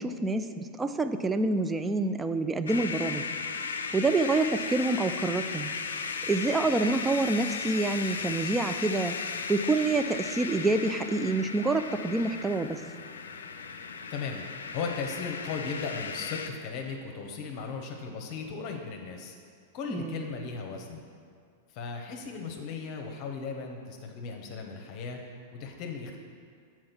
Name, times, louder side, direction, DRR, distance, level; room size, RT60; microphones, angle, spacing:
voice 1, 0.0-3.3 3.9-5.7 6.3-9.2 9.5-12.8 19.9-20.2, right 2 dB, 15° right, 9 dB, 0.4 m, -27 dB
sound 1, 2.7-16.5, left 5 dB, 75° left, 0.5 m, -36 dB
voice 2, 14.1-14.5 14.7-19.3 19.7-21.0 21.7-25.2 25.5-26.2, left 5 dB, 45° left, 3 dB, 0.9 m, -36 dB
7.7 x 4.5 x 5.8 m, 2.1 s
hypercardioid pair, 100°, 0 cm